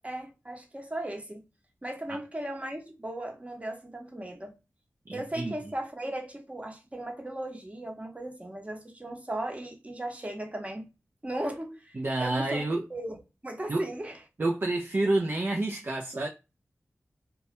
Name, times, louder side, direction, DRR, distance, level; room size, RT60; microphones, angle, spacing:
voice 1, 0.0-1.4 1.8-4.5 5.1-10.8 11.2-12.6 12.9-13.2 13.4-14.2, right 1 dB, 25° right, 0.8 m, -37 dB
voice 2, 5.1-5.5 12.0-12.8 13.7-13.8 14.4-16.3, right 2 dB, 40° right, 0.4 m, -28 dB
2.2 x 2.1 x 2.8 m
cardioid pair, 45°, 5 cm